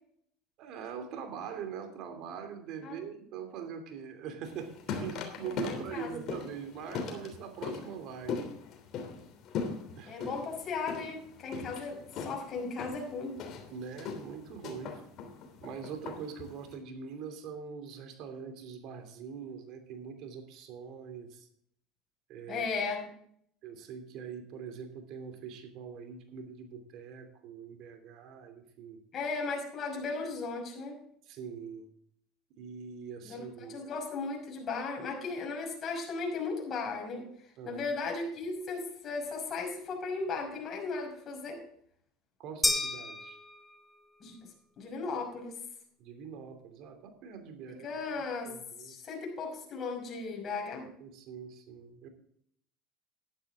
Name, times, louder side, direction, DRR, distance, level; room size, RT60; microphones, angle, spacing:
voice 1, 0.6-8.4 10.0-10.3 13.7-15.0 15.6-21.5 22.3-22.7 23.6-29.0 31.3-31.9 32.6-33.8 37.6-37.8 42.4-43.4 46.0-47.9 48.5-48.9 51.0-52.1, right 7 dB, 60° right, 6 dB, 2.8 m, -43 dB
sound 1, 4.4-16.7, left 5 dB, 55° left, 3.2 m, -40 dB
voice 2, 5.7-6.2 10.0-13.4 22.5-23.1 29.1-31.0 33.2-37.3 37.7-41.6 44.2-44.3 44.8-45.6 47.7-50.9, left 4 dB, 40° left, 0 dB, 5.6 m, -36 dB
sound 2, 42.6-44.1, left 2 dB, 10° left, 1.5 m, -32 dB
12.0 x 11.5 x 3.7 m, 0.66 s
supercardioid pair, 100°, 0 cm